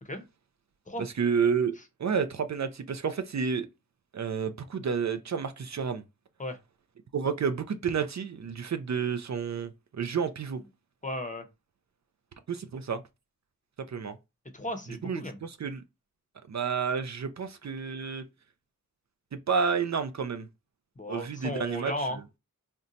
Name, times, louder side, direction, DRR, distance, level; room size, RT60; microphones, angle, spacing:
voice 1, 1.2-3.7 4.1-6.0 7.1-10.6 12.5-13.0 13.9-14.1 15.0-15.8 16.5-18.2 19.5-20.5 21.1-21.9, right 6 dB, 55° right, 0.4 m, -30 dB
voice 2, 11.0-11.4 14.5-15.4 21.0-22.4, left 1 dB, 25° left, 0.7 m, -35 dB
2.6 x 2.2 x 3.8 m
wide cardioid pair, 45°, 34 cm